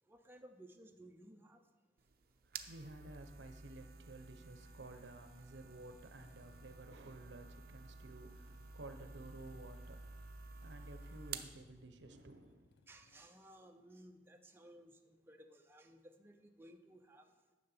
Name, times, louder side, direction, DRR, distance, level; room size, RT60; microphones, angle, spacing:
voice 1, 0.1-1.6 11.3-11.4 12.9-17.3, right 1 dB, 15° right, 4 dB, 0.6 m, -59 dB
sound 1, 2.0-11.6, right 5 dB, 55° right, 0.6 m, -52 dB
voice 2, 2.4-10.0 10.6-12.7, right 2 dB, 90° right, 8 dB, 0.9 m, -53 dB
Motorcycle / Engine starting, 4.4-13.3, left 4 dB, 65° left, 0.4 m, -68 dB
9.9 x 6.8 x 5.6 m, 1.3 s
head